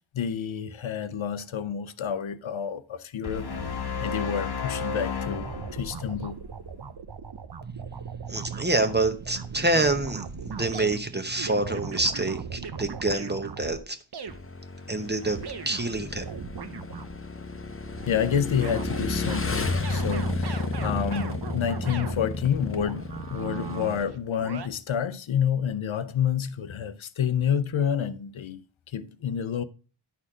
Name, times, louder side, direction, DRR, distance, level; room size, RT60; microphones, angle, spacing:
voice 1, 0.1-3.7 4.0-6.4 18.1-29.6, left 8 dB, 75° left, 0.6 m, -29 dB
sound 1, 3.2-6.6, left 5 dB, 55° left, 1.0 m, -32 dB
sound 2, 5.2-13.8 14.1-14.4 15.0-17.2 17.5-22.2 22.7-24.7, right 6 dB, 55° right, 0.7 m, -39 dB
voice 2, 7.6-14.0 14.9-15.4 15.7-16.2, right 2 dB, 20° right, 0.9 m, -27 dB
Motorcycle / Engine, 14.3-24.0, left 3 dB, 30° left, 0.8 m, -32 dB
11.0 x 4.2 x 4.8 m
wide cardioid pair, 70°, 48 cm